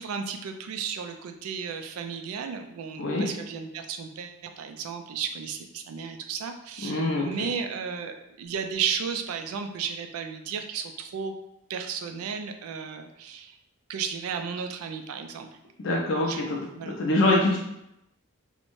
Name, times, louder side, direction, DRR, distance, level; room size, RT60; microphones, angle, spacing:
voice 1, 0.0-11.3 11.7-13.6 13.9-15.5 16.2-16.4 16.8-17.0, right 6 dB, 90° right, 6 dB, 0.3 m, -34 dB
voice 2, 6.8-7.5 15.8-17.6, left 2 dB, 60° left, -3 dB, 0.4 m, -25 dB
2.6 x 2.1 x 3.0 m, 0.84 s
head